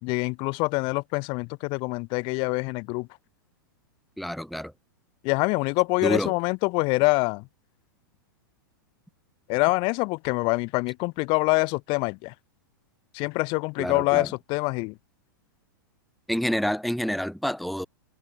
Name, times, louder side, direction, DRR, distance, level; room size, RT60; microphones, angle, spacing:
voice 1, 0.0-3.1 5.2-7.5 9.5-12.3 13.1-14.9, left 28 dB, 45° left, 3.7 m, -25 dB
voice 2, 4.2-4.7 6.0-6.3 13.8-14.3 16.3-17.9, equal, ahead, 1.2 m, -28 dB
hypercardioid pair, 110°, 12 cm